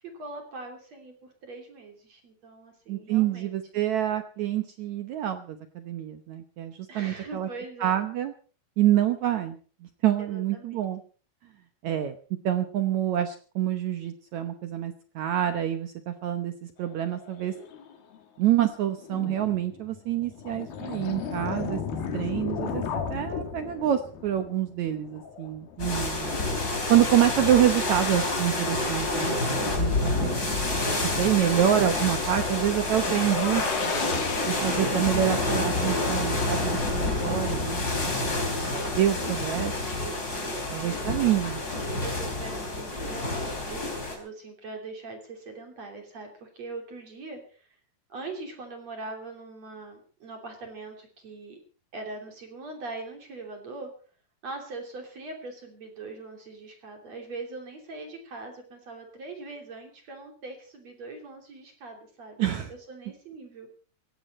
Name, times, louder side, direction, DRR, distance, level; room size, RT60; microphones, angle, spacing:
voice 1, 0.2-3.5 6.9-8.0 10.2-10.9 40.4-41.4 42.0-47.8 48.1-51.6 51.9-53.9 54.4-63.7, right 3 dB, 45° right, 3 dB, 4.0 m, -42 dB
voice 2, 2.9-7.5 7.8-8.3 8.8-9.6 10.0-11.0 11.8-12.2 12.4-16.5 16.8-17.5 18.4-21.8 22.1-22.8 23.1-26.4 26.9-30.3 31.0-33.9 34.4-38.4 39.0-39.7 40.7-41.6 62.4-62.7, right 11 dB, 65° right, 8 dB, 2.0 m, -26 dB
sound 1, 16.9-18.2 18.7-18.8 18.9-30.4 30.8-30.9 31.1-35.9, left 6 dB, 80° left, 4.1 m, -37 dB
sound 2, 25.8-44.2, left 2 dB, 25° left, 4.4 m, -28 dB
17.5 x 15.5 x 4.3 m, 0.40 s
omnidirectional pair, 4.2 m